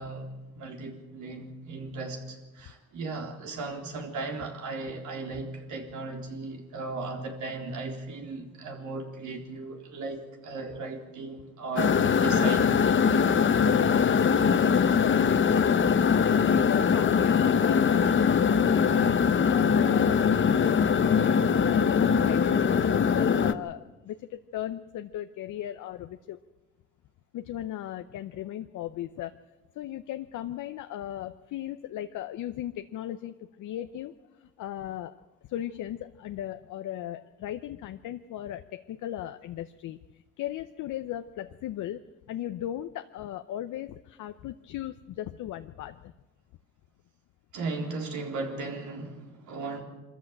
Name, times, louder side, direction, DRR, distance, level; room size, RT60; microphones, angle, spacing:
voice 1, 0.0-12.8 47.5-49.8, right 3 dB, 75° right, 2 dB, 3.8 m, -36 dB
sound 1, 11.8-23.5, left 6 dB, 40° left, 1.0 m, -22 dB
voice 2, 13.7-15.7 16.0-26.4 27.3-29.3 29.8-35.2 35.4-40.0 40.4-42.0 42.3-46.1, left 12 dB, 80° left, 9 dB, 0.8 m, -37 dB
23.5 x 14.0 x 8.7 m, 1.1 s
cardioid pair, 90°, 30 cm